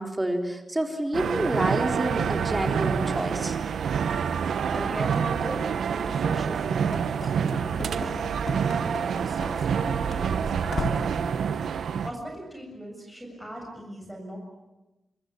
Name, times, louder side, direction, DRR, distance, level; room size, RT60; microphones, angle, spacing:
voice 1, 0.0-3.6, right 1 dB, 15° right, 3 dB, 3.9 m, -28 dB
sound 1, 1.1-12.1, right 7 dB, 90° right, 1.1 m, -27 dB
voice 2, 4.3-7.3 7.7-11.2 11.5-14.4, right 1 dB, 5° left, 1 dB, 7.4 m, -39 dB
Run / Slam, 6.9-9.8 10.1-10.2 10.7-11.2, left 5 dB, 70° left, 2.5 m, -38 dB
25.5 x 24.5 x 8.5 m, 1.0 s
wide cardioid pair, 105°, 0 cm